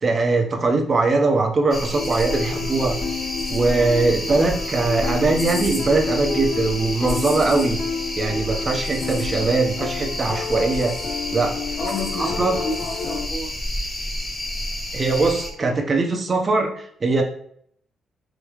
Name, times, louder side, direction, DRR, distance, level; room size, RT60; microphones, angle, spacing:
voice 1, 0.0-3.0 3.5-7.8 8.2-11.0 11.3-11.6 12.2-12.5 14.9-17.2, right 3 dB, 35° right, 3 dB, 0.9 m, -21 dB
sound 1, 1.7-15.5, left 1 dB, 25° left, 1.2 m, -30 dB
sound 2, 1.9-13.3, left 6 dB, 55° left, 0.4 m, -30 dB
voice 2, 11.8-13.5 15.6-15.7, left 2 dB, 75° left, -1 dB, 1.4 m, -31 dB
5.0 x 3.1 x 3.1 m, 0.64 s
cardioid pair, 90°, 0 cm